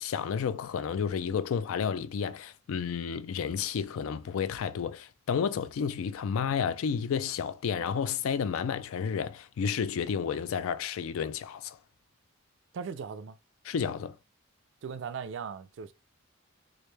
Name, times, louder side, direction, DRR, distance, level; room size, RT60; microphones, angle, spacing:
voice 1, 0.0-11.8 13.6-14.2, left 7 dB, 80° left, 0.3 m, -31 dB
voice 2, 12.7-13.4 14.8-15.9, right 6 dB, 60° right, 0.3 m, -38 dB
3.1 x 2.4 x 3.2 m
head